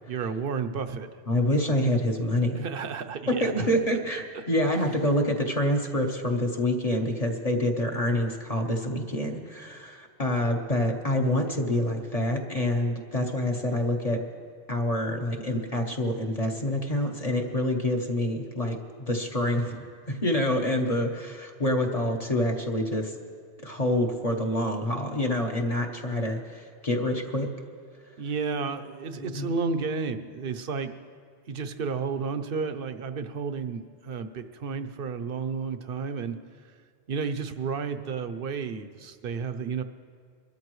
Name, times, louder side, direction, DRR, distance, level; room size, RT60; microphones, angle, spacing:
voice 1, 0.1-1.1 2.6-3.7 4.3-4.4 21.8-22.1 28.2-30.9 31.5-36.4 37.1-39.8, right 5 dB, 60° right, 9 dB, 0.9 m, -32 dB
voice 2, 1.3-2.6 3.4-14.2 14.7-19.8 20.1-23.1 23.6-27.5 29.2-29.5, left 1 dB, 35° left, 1 dB, 1.1 m, -27 dB
23.5 x 13.0 x 3.1 m, 2.1 s
omnidirectional pair, 1.1 m